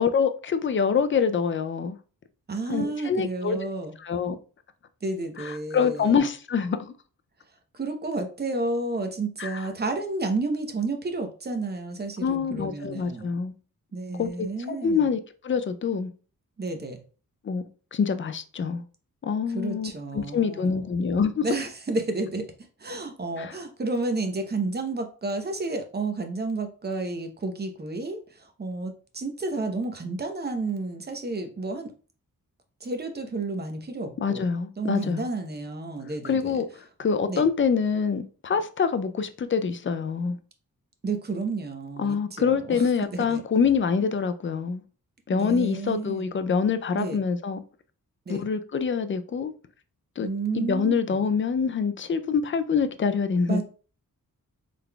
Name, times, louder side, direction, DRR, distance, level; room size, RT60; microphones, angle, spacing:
voice 1, 0.0-2.0 2.7-3.6 4.0-4.4 5.4-6.9 9.4-9.6 12.2-13.5 14.2-16.1 17.4-18.8 19.2-21.5 23.4-23.5 34.2-35.2 36.2-40.4 42.0-44.8 45.3-47.6 48.3-49.5 50.2-50.3 50.5-53.6, left 6 dB, 35° left, 0.4 m, -25 dB
voice 2, 2.5-3.9 5.0-6.2 7.8-13.3 13.9-15.1 16.6-17.0 19.5-20.8 21.4-22.5 22.8-31.9 32.8-34.5 34.8-36.6 37.3-37.5 41.0-42.8 43.1-43.4 45.3-46.3 46.9-47.2 48.3-48.5 50.2-51.2 53.5-53.6, right 3 dB, 30° right, 0.7 m, -31 dB
3.8 x 3.4 x 2.2 m
wide cardioid pair, 100°, 34 cm